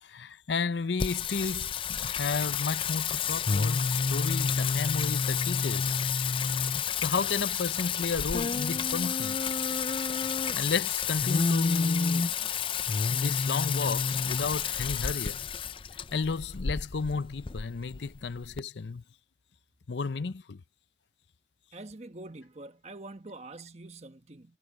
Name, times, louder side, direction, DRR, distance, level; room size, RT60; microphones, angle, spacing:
voice 1, 0.0-6.0 7.0-9.5 10.5-12.5 13.1-15.5 16.1-19.0 19.9-20.6, left 4 dB, 75° left, 0.6 m, -33 dB
Singing, 1.0-18.6, left 6 dB, 30° left, 0.4 m, -29 dB
voice 2, 21.7-24.6, right 2 dB, 35° right, 1.2 m, -45 dB
head